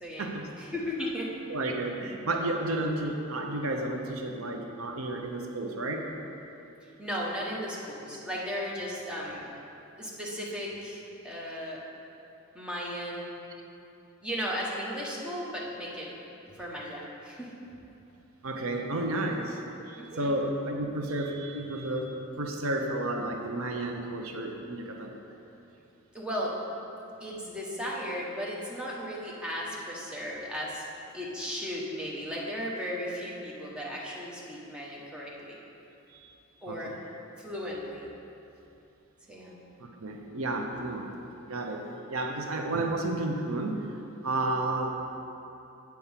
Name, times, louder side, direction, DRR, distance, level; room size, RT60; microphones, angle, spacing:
voice 1, 0.0-0.3 0.6-1.3 7.0-9.5 10.0-11.8 12.5-13.4 14.2-16.1 16.5-17.5 20.0-20.3 26.1-26.5 27.2-30.8 31.1-35.6 36.6-36.9 37.4-38.1 39.3-39.6, equal, 5° right, -5 dB, 1.2 m, -36 dB
voice 2, 1.5-6.1 18.4-19.6 19.9-25.1 36.1-36.3 36.7-37.0 39.8-43.8 44.2-44.9, right 2 dB, 85° right, 2 dB, 0.8 m, -32 dB
8.3 x 4.6 x 7.3 m, 2.8 s
head